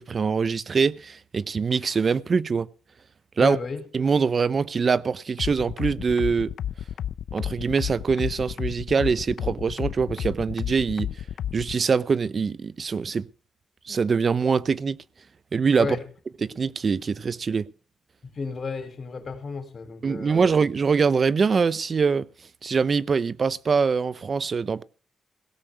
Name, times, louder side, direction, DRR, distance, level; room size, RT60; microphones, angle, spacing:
voice 1, 0.0-2.7 3.4-3.6 3.9-6.5 7.3-11.1 11.5-13.3 13.9-15.0 15.5-16.0 16.4-17.6 20.0-22.3 22.6-24.8, right 5 dB, 50° right, 0.6 m, -23 dB
voice 2, 3.4-3.8 15.8-16.0 18.4-20.5, left 4 dB, 55° left, 3.9 m, -32 dB
sound 1, 5.4-11.7, left 10 dB, 80° left, 0.5 m, -31 dB
17.5 x 6.3 x 8.0 m
cardioid pair, 60°, 0 cm